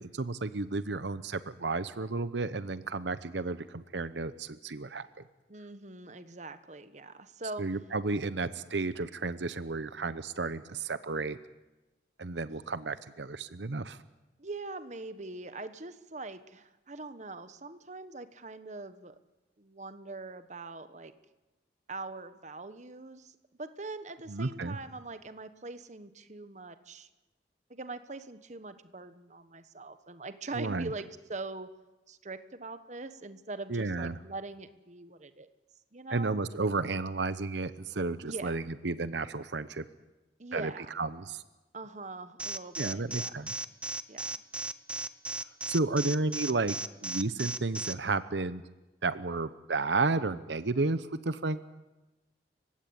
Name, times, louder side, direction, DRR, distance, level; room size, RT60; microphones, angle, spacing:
voice 1, 0.0-5.1 7.6-11.4 12.2-14.0 24.3-24.8 30.5-30.9 33.7-34.1 36.1-39.9 40.5-41.4 42.8-43.5 45.7-46.8 47.0-48.6 49.0-51.6, right 3 dB, 85° right, 14 dB, 0.9 m, -32 dB
voice 2, 5.5-7.6 12.5-12.6 14.4-19.1 19.6-21.1 21.9-27.1 27.7-31.7 32.1-35.5 35.9-36.4 38.2-38.6 40.4-40.9 41.7-43.5 44.1-44.4, right 3 dB, 40° right, 11 dB, 1.2 m, -42 dB
Alarm, 42.4-47.9, right 2 dB, 5° right, 0.8 m, -36 dB
29.5 x 16.0 x 8.8 m, 1.1 s
head